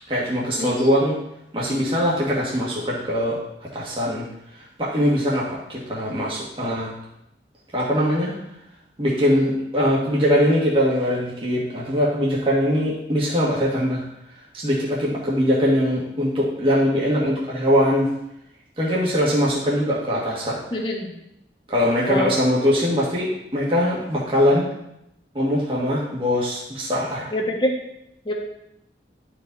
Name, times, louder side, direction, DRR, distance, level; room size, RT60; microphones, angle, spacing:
voice 1, 0.1-1.2 1.5-4.3 4.5-6.9 7.7-8.3 9.0-14.0 14.5-18.1 18.8-20.6 21.7-24.6 25.3-27.3, equal, 30° right, -5 dB, 1.6 m, -22 dB
voice 2, 20.7-21.1 22.1-22.3 27.3-27.7 28.3-28.4, left 1 dB, 30° left, 0 dB, 1.3 m, -24 dB
11.0 x 4.9 x 4.0 m, 0.81 s
head